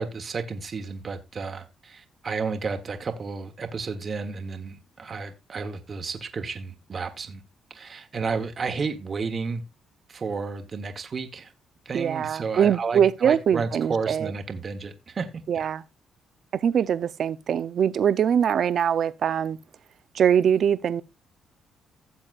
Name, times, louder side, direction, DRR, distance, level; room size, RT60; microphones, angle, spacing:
voice 1, 0.0-7.4 7.7-9.6 10.1-11.5 11.8-15.3 15.5-15.7, right 4 dB, 40° right, 1.2 m, -32 dB
voice 2, 11.9-14.3 15.5-15.8 16.5-19.6 20.1-21.0, right 8 dB, 60° right, 0.6 m, -23 dB
15.5 x 7.1 x 2.5 m
cardioid pair, 90°, 0 cm